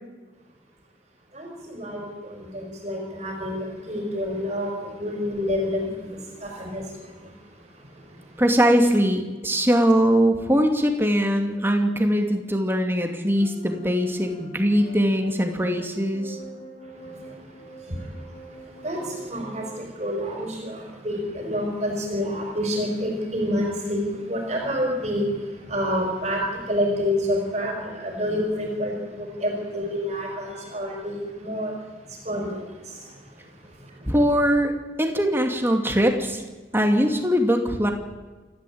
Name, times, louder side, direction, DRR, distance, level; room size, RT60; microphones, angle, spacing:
voice 1, 1.3-2.1 2.4-4.7 5.0-6.8 17.9-18.0 18.8-19.0 19.3-19.6 20.0-20.8 21.0-25.2 25.7-26.4 26.7-31.7 32.2-32.5, equal, 35° right, 0 dB, 5.1 m, -28 dB
voice 2, 8.4-16.4 34.1-34.7 35.0-36.4 36.7-37.9, equal, 15° right, 4 dB, 2.5 m, -21 dB
sound 1, 13.3-19.8, right 1 dB, 35° left, 5.0 m, -44 dB
28.5 x 13.0 x 8.8 m, 1.3 s
head